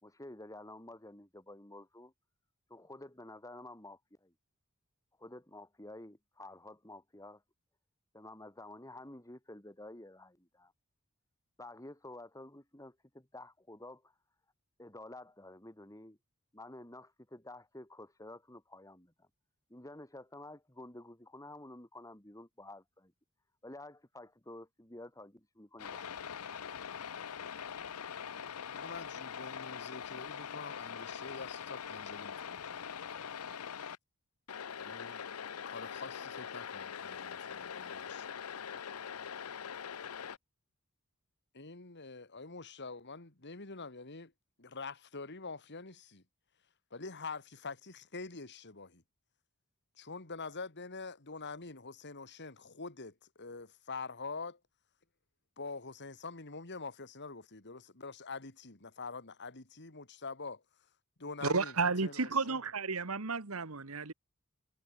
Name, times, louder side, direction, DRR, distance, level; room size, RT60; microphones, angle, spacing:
voice 1, 0.0-2.1 2.7-4.3 5.2-7.4 8.1-10.7 11.6-14.1 14.8-16.2 16.5-19.3 19.7-23.1 23.6-26.1, left 1 dB, 15° left, 4.3 m, -50 dB
sound 1, 25.8-34.0 34.5-40.4, left 7 dB, 85° left, 0.7 m, -43 dB
voice 2, 28.7-33.3 34.7-35.2 35.6-38.3 41.5-44.3 44.6-46.2 46.9-49.0 50.0-54.6 55.6-60.6 61.2-62.6, left 4 dB, 55° left, 2.7 m, -45 dB
voice 3, 61.4-64.1, right 4 dB, 70° right, 1.5 m, -32 dB
head